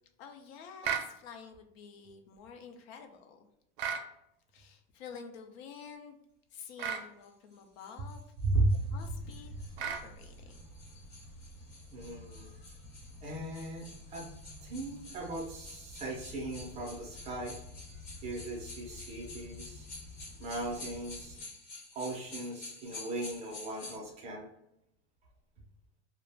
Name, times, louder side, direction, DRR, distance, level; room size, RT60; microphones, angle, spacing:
voice 1, 0.2-3.5 4.5-6.2 6.5-8.2 8.9-10.6, left 6 dB, 75° left, 5 dB, 0.6 m, -49 dB
sound 1, 0.8-1.1 3.8-4.1 6.8-7.1 9.8-10.1, right 7 dB, 85° right, 0.5 m, -34 dB
sound 2, 7.2-24.0, left 2 dB, 30° left, 0.6 m, -50 dB
voice 2, 8.4-9.0 11.9-12.5 13.2-14.3 14.6-17.6 18.2-19.9 20.4-21.4 21.9-24.5, right 2 dB, 20° right, -1 dB, 0.4 m, -36 dB
sound 3, 8.5-21.4, left 2 dB, 90° left, 0.9 m, -51 dB
2.3 x 2.0 x 3.3 m, 0.80 s
supercardioid pair, 170°, 31 cm